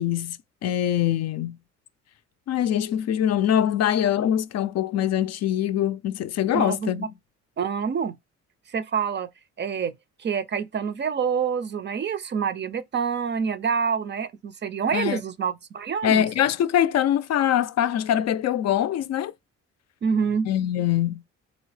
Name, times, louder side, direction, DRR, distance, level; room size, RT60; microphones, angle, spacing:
voice 1, 0.0-1.6 2.5-7.1 14.9-15.2 16.0-19.3 20.5-21.2, left 10 dB, 60° left, 0.4 m, -23 dB
voice 2, 6.5-7.1 7.6-8.2 8.7-9.3 9.6-9.9 10.2-16.3 20.0-20.5, right 6 dB, 35° right, 0.5 m, -27 dB
4.0 x 2.7 x 3.2 m
cardioid pair, 90°, 30 cm